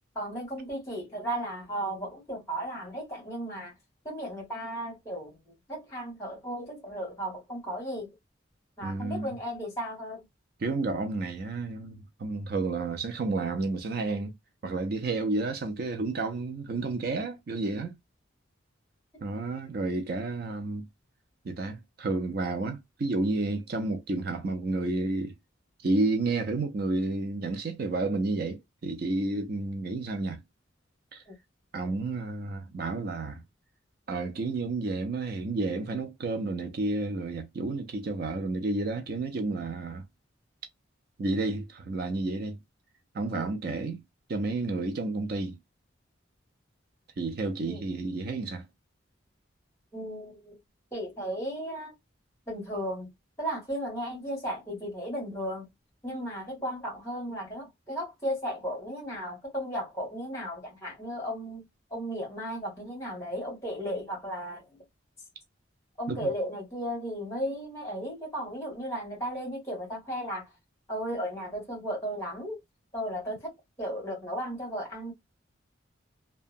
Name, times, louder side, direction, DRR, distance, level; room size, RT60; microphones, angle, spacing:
voice 1, 0.1-3.7 4.0-5.3 5.7-8.1 8.8-10.2 43.3-43.5 47.7-47.8 49.9-50.5 50.9-51.9 52.5-53.1 53.4-55.7 56.0-61.6 61.9-64.6 66.0-70.4 70.9-72.6 72.9-73.5 73.8-75.1, equal, 15° left, 1.5 m, -35 dB
voice 2, 8.8-9.4 10.6-14.3 14.6-18.0 19.2-20.9 21.4-25.3 25.8-30.4 31.1-31.2 31.7-33.4 34.1-40.0 41.2-42.6 43.1-44.0 44.3-45.6 47.2-48.7 66.1-66.3, right 3 dB, 50° right, 0.4 m, -31 dB
2.8 x 2.1 x 2.4 m
head